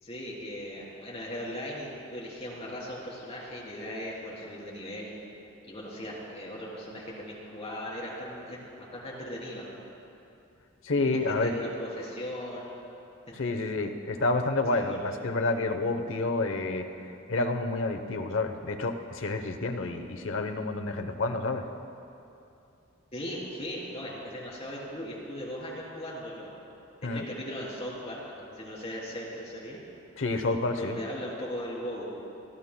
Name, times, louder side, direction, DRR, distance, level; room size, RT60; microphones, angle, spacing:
voice 1, 0.0-5.1 5.6-9.6 11.1-12.7 13.4-13.5 14.7-15.0 23.1-26.5 27.1-29.8 30.5-32.1, equal, 30° left, -5 dB, 3.3 m, -38 dB
voice 2, 10.8-11.5 13.3-16.9 17.3-21.7 27.0-27.3 30.2-31.0, left 2 dB, 80° left, 7 dB, 0.8 m, -29 dB
28.5 x 12.5 x 2.2 m, 2.7 s
head